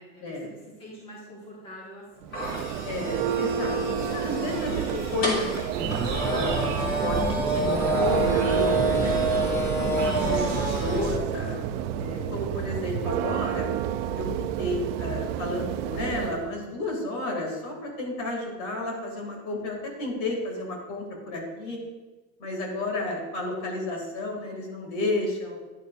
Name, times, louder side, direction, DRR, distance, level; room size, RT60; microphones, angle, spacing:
voice 1, 0.0-2.6, equal, 15° left, -6 dB, 1.7 m, -46 dB
Church bell, 2.2-16.5, right 9 dB, 85° right, 0.6 m, -30 dB
sound 1, 2.3-11.1, right 1 dB, 35° left, 2.4 m, -29 dB
voice 2, 2.8-5.6 5.9-9.2 9.8-11.6 12.0-13.7 14.1-14.3 14.6-21.8 22.4-25.5, left 2 dB, 50° left, 0 dB, 2.3 m, -32 dB
sound 2, 5.7-11.2, right 4 dB, 50° right, 1.3 m, -29 dB
10.5 x 6.9 x 2.5 m, 1.2 s
cardioid pair, 170°, 36 cm